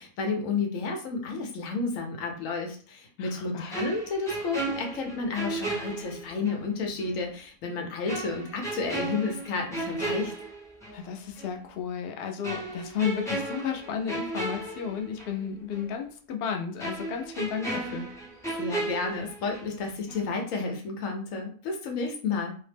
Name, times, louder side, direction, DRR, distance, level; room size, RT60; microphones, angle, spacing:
voice 1, 0.0-10.3 18.6-22.6, left 4 dB, 65° left, 2 dB, 1.0 m, -31 dB
voice 2, 3.2-3.7 10.9-18.1, left 7 dB, 85° left, 3 dB, 0.5 m, -33 dB
sound 1, 3.7-6.7 7.0-7.1 8.1-11.0 11.4-11.6 12.4-15.4 15.7-15.9 16.8-19.8 20.1-20.3, right 2 dB, 5° left, 0.4 m, -35 dB
2.7 x 2.0 x 3.2 m, 0.43 s
omnidirectional pair, 1.6 m